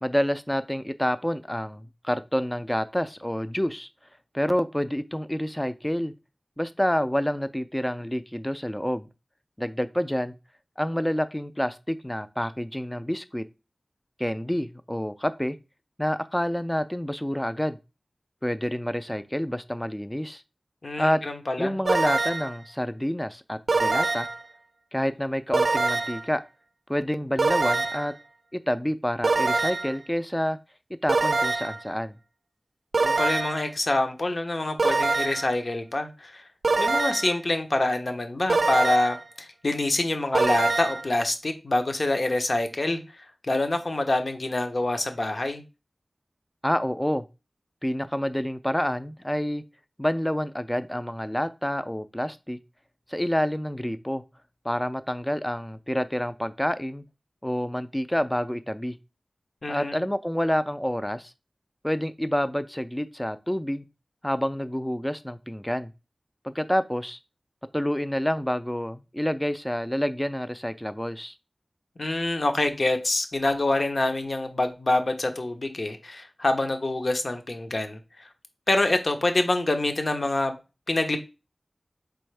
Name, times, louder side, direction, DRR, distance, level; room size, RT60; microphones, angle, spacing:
voice 1, 0.0-3.9 4.3-6.1 6.6-9.1 9.6-10.3 10.8-13.4 14.2-15.6 16.0-17.8 18.4-20.4 21.0-21.2 21.6-24.3 24.9-26.4 26.9-28.1 28.5-30.6 31.0-32.2 46.6-47.2 47.8-49.6 50.0-52.6 53.1-54.2 54.6-57.0 57.4-59.0 59.7-61.3 61.8-63.8 64.2-65.9 66.4-67.2 67.7-71.4, equal, 10° left, 0.3 m, -28 dB
voice 2, 20.8-21.7 33.0-36.4 36.8-43.0 43.5-45.6 59.6-60.0 72.0-78.0 78.7-80.5 80.9-81.2, left 2 dB, 60° left, 0.7 m, -26 dB
sound 1, 21.9-22.6 23.7-24.4 25.5-26.3 27.4-28.1 29.2-30.0 31.1-31.8 32.9-33.7 34.8-35.5 36.6-37.4 38.5-39.2 40.3-41.1, right 3 dB, 80° right, 0.4 m, -24 dB
4.3 x 3.4 x 3.2 m
wide cardioid pair, 75°, 0 cm